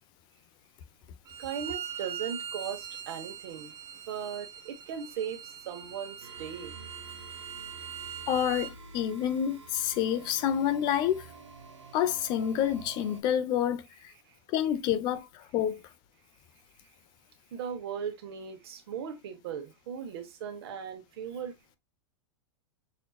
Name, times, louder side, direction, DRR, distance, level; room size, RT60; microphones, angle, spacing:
Bowed string instrument, 1.3-8.7, right 8 dB, 20° right, 0.7 m, -42 dB
voice 1, 1.4-3.7 4.1-6.7 14.3-14.4 17.5-21.8, right 7 dB, 60° right, 1.3 m, -38 dB
sound 1, 6.2-13.2, right 4 dB, 85° right, 1.2 m, -49 dB
voice 2, 8.3-11.3 11.9-13.9 14.5-15.8, left 10 dB, 30° left, 0.6 m, -28 dB
6.4 x 2.8 x 2.3 m
supercardioid pair, 155°, 15 cm